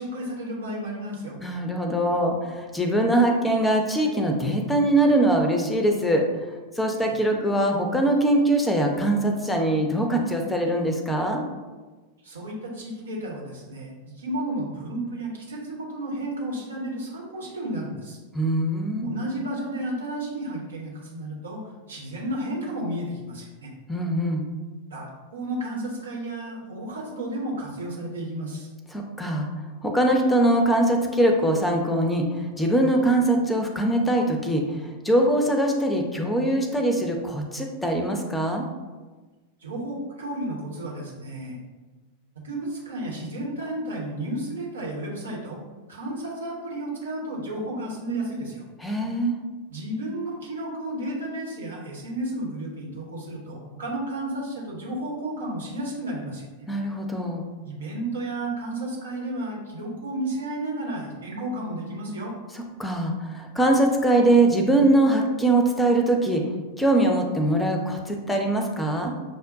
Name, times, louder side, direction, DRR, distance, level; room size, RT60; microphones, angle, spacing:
voice 1, 0.0-1.4 7.0-7.1 12.2-18.2 19.0-23.7 24.9-25.1 25.3-28.7 39.6-41.6 42.4-45.6 45.9-48.6 49.7-56.7 57.6-62.3, right 1 dB, 70° right, -2 dB, 1.0 m, -32 dB
voice 2, 1.4-6.2 6.7-11.4 18.3-19.1 23.9-24.5 28.9-29.5 29.8-38.6 48.8-49.4 56.7-57.5 62.8-66.4 66.8-69.1, right 1 dB, 10° left, 3 dB, 0.6 m, -22 dB
6.3 x 2.1 x 2.6 m, 1.3 s
figure-of-eight pair, 90°, 0 cm